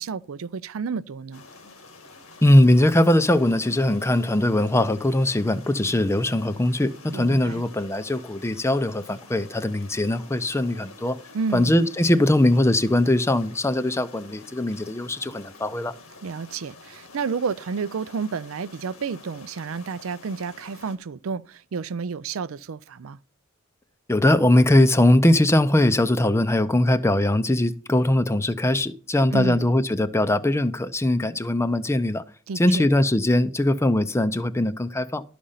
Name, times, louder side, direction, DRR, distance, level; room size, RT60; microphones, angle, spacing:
voice 1, 0.0-1.4 7.1-7.6 11.3-11.7 16.2-23.2 29.3-29.7 32.5-32.9, right 5 dB, 75° right, 0.5 m, -31 dB
sound 1, 1.3-21.0, left 3 dB, 85° left, 2.0 m, -48 dB
voice 2, 2.4-11.2 11.5-15.9 24.1-32.2 32.6-35.2, left 1 dB, 15° left, 0.5 m, -21 dB
12.5 x 5.1 x 5.6 m
head